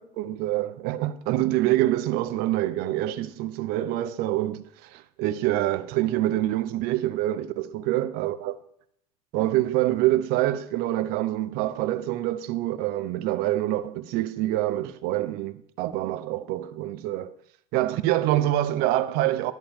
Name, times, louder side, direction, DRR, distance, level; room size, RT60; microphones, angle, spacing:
voice 1, 0.2-8.5 9.3-17.3 17.7-19.5, right 15 dB, 55° right, 0.9 m, -26 dB
11.5 x 5.4 x 7.4 m
hypercardioid pair, 85°, 19 cm